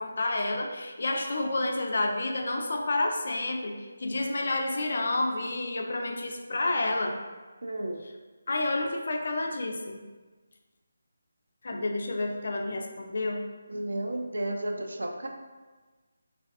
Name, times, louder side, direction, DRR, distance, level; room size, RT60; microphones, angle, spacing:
voice 1, 0.0-7.2 8.5-10.0 11.6-13.4, left 2 dB, 55° left, 2 dB, 0.4 m, -29 dB
voice 2, 7.6-8.0 11.7-11.9 13.7-15.3, right 1 dB, 70° right, 3 dB, 0.4 m, -33 dB
3.3 x 2.3 x 2.4 m, 1.3 s
figure-of-eight pair, 155°, 0 cm